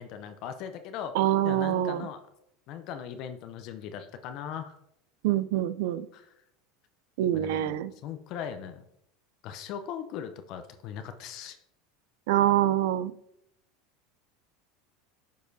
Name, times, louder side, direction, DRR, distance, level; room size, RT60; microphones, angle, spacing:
voice 1, 0.0-1.1 1.4-2.2 2.7-4.8 6.1-6.3 7.3-8.8 9.4-11.6, left 8 dB, 55° left, 8 dB, 0.6 m, -39 dB
voice 2, 1.1-2.1 5.2-6.1 7.2-7.9 12.3-13.1, right 12 dB, 75° right, 15 dB, 0.4 m, -25 dB
10.0 x 4.8 x 2.7 m, 0.76 s
supercardioid pair, 115°, 0 cm